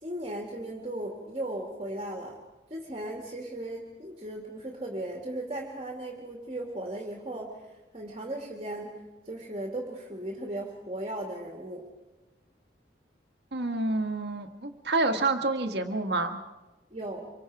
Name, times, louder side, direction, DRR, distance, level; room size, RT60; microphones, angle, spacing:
voice 1, 0.0-2.4 2.7-7.6 7.9-11.9 16.9-17.3, right 1 dB, 30° right, 0 dB, 2.3 m, -37 dB
voice 2, 13.5-16.4, right 2 dB, 65° right, 5 dB, 1.7 m, -28 dB
26.5 x 24.0 x 4.9 m, 1.1 s
head